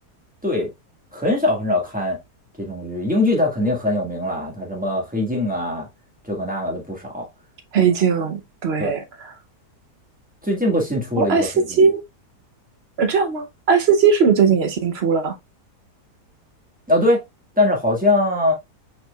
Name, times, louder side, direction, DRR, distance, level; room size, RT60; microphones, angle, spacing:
voice 1, 1.1-2.2 2.6-5.9 6.2-7.3 8.8-8.9 10.4-11.8 16.9-17.2 17.6-18.5, left 1 dB, 5° right, 1.4 m, -22 dB
voice 2, 7.7-9.0 11.2-12.0 13.0-15.3, right 6 dB, 55° right, 0.8 m, -18 dB
4.8 x 4.4 x 2.3 m
omnidirectional pair, 1.8 m